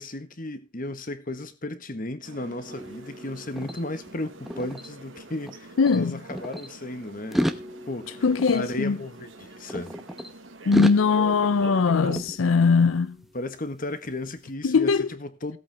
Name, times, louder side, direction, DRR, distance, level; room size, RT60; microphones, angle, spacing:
voice 1, 0.0-7.5 7.9-8.2 8.5-9.9 13.3-14.9 15.2-15.6, left 1 dB, 45° left, 1.5 m, -34 dB
sound 1, 2.2-12.2, right 2 dB, 80° right, 1.5 m, -44 dB
sound 2, 2.7-5.6 5.8-6.7 7.2-10.3 10.7-13.0, equal, ahead, 1.0 m, -33 dB
voice 2, 5.8-6.2 8.2-9.0 10.7-13.2 14.6-15.1, left 5 dB, 90° left, 0.5 m, -21 dB
17.0 x 8.4 x 3.5 m
head